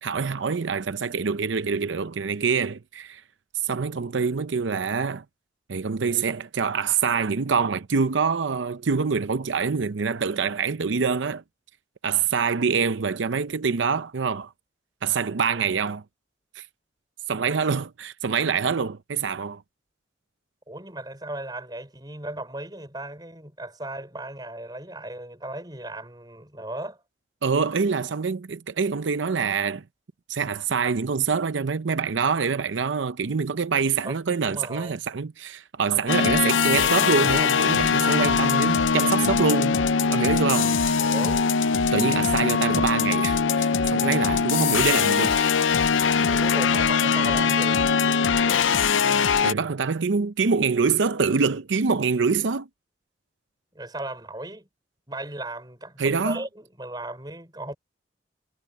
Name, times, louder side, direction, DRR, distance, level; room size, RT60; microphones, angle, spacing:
voice 1, 0.0-3.2 3.6-5.2 5.7-11.4 12.0-14.5 15.0-16.0 16.6-16.7 17.3-19.6 27.4-29.8 30.3-39.8 40.1-40.8 41.9-45.4 49.4-52.7 56.0-56.4, right 5 dB, 80° right, 0.6 m, -25 dB
voice 2, 20.7-27.0 34.1-35.0 41.0-41.4 46.2-47.8 53.7-54.7 55.1-57.7, right 1 dB, 20° right, 5.7 m, -36 dB
sound 1, 36.1-49.5, left 5 dB, 85° left, 0.6 m, -21 dB
head